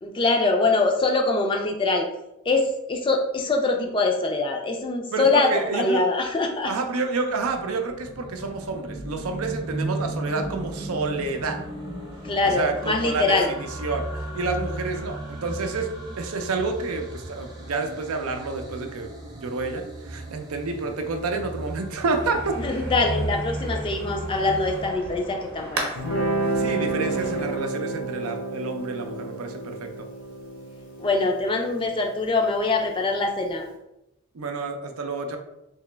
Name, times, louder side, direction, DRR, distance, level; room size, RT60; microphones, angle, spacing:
voice 1, 0.0-2.1 2.5-6.7 12.2-13.5 22.5-25.9 31.0-33.6, left 3 dB, 25° left, 2 dB, 0.4 m, -23 dB
voice 2, 5.1-6.0 6.6-11.6 12.4-14.1 14.3-15.9 16.2-22.6 26.5-30.1 34.3-35.4, right 3 dB, 80° right, 5 dB, 0.5 m, -29 dB
sound 1, 6.8-24.9, right 1 dB, 20° right, 0.7 m, -35 dB
sound 2, 22.2-27.6, right 2 dB, 50° right, 0.8 m, -37 dB
Guitar, 26.0-33.1, right 2 dB, 80° left, 0.9 m, -30 dB
3.2 x 2.9 x 3.3 m, 0.90 s
head